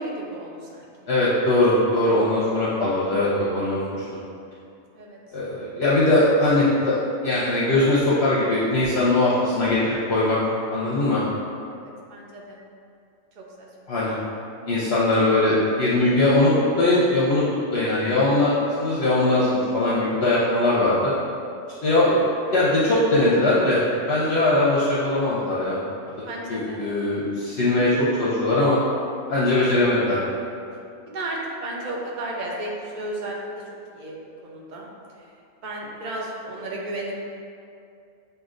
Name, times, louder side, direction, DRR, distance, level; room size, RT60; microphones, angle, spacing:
voice 1, 0.0-0.9 4.9-5.2 11.8-12.6 13.4-13.7 26.2-26.8 31.1-33.6 33.9-34.2 34.4-34.9 35.6-37.3, right 1 dB, 45° right, -2 dB, 0.6 m, -33 dB
voice 2, 1.1-3.3 3.5-4.0 5.3-7.0 7.2-10.4 10.7-11.2 13.9-14.2 14.7-17.5 17.7-21.1 21.8-22.2 22.5-23.8 24.1-25.8 26.5-28.8 29.3-30.2, left 2 dB, 60° left, -7 dB, 0.8 m, -20 dB
7.6 x 2.6 x 2.5 m, 2.5 s
omnidirectional pair, 1.4 m